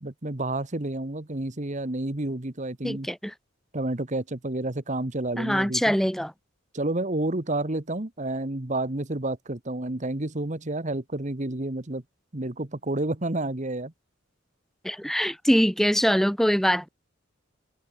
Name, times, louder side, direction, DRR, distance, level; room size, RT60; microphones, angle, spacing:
voice 1, 0.0-3.1 3.7-5.9 6.7-12.0 12.3-13.9, right 2 dB, 35° right, 1.4 m, -30 dB
voice 2, 2.8-3.3 5.4-6.3 14.8-16.9, equal, ahead, 1.3 m, -23 dB
head